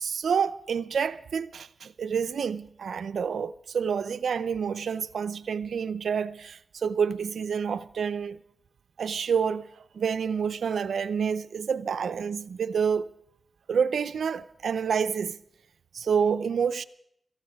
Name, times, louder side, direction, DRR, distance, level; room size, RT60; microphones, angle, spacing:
voice 1, 0.0-8.4 9.0-13.1 13.7-15.4 15.9-16.8, right 6 dB, 90° right, 0.6 m, -28 dB
26.0 x 14.5 x 3.6 m
cardioid pair, 50°, 0 cm